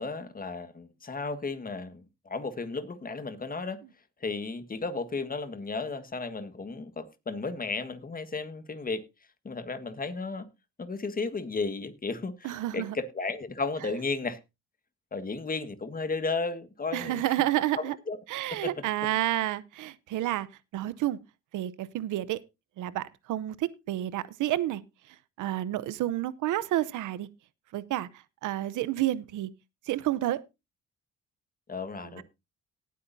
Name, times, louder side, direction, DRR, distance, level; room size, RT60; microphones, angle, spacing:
voice 1, 0.0-3.8 4.2-9.0 9.4-10.5 10.8-14.4 15.1-17.2 17.8-18.2 18.6-18.7 31.7-32.2, left 3 dB, 30° left, 1.5 m, -34 dB
voice 2, 12.4-13.0 16.9-18.0 18.3-20.5 20.7-21.2 21.5-22.4 22.8-24.8 25.4-27.3 27.7-28.1 28.4-29.5 29.9-30.4 32.2-32.3, right 14 dB, 80° right, 0.8 m, -30 dB
18.5 x 8.5 x 2.7 m
cardioid pair, 90°, 30 cm